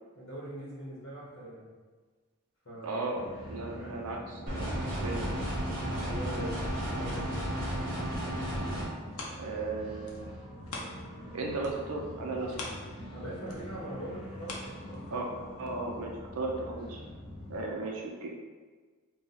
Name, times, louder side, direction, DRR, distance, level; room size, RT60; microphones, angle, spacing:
voice 1, 0.2-1.7 2.6-3.1 3.7-4.1 6.0-6.6 7.0-7.5 12.8-12.9 13.1-15.3, right 1 dB, 65° left, -7 dB, 0.9 m, -42 dB
voice 2, 2.8-3.2 3.5-5.3 9.4-10.4 11.3-12.5 15.1-15.3 15.6-17.0 17.5-18.3, right 3 dB, 80° right, -1 dB, 0.5 m, -35 dB
sound 1, 3.1-17.6, equal, 30° left, 1.0 m, -45 dB
sound 2, 4.5-8.9, equal, 40° right, 0.9 m, -33 dB
sound 3, 9.1-11.3 11.6-15.4 15.9-16.0, left 2 dB, 80° left, 0.6 m, -45 dB
2.8 x 2.3 x 3.9 m, 1.4 s
head